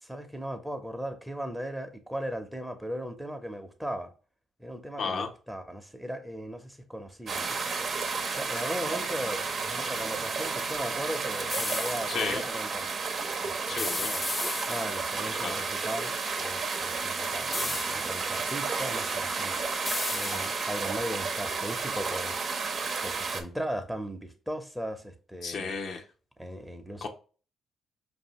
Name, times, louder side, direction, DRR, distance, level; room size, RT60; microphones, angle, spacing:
voice 1, 0.0-4.1 4.6-7.9 8.3-12.9 13.4-14.2 14.7-19.6 20.1-22.3 23.0-25.7 26.4-27.1, equal, 5° right, 0.9 m, -37 dB
voice 2, 5.0-5.3 12.1-12.4 13.7-14.1 15.3-15.6 25.4-26.0 27.0-27.1, left 5 dB, 65° left, 0.7 m, -33 dB
sound 1, 7.3-23.4, right 4 dB, 55° right, 0.8 m, -32 dB
sound 2, 11.5-12.3 13.8-15.2 17.5-18.3 19.9-20.9, left 3 dB, 25° left, 0.4 m, -34 dB
5.1 x 2.7 x 3.1 m
supercardioid pair, 55°, 0 cm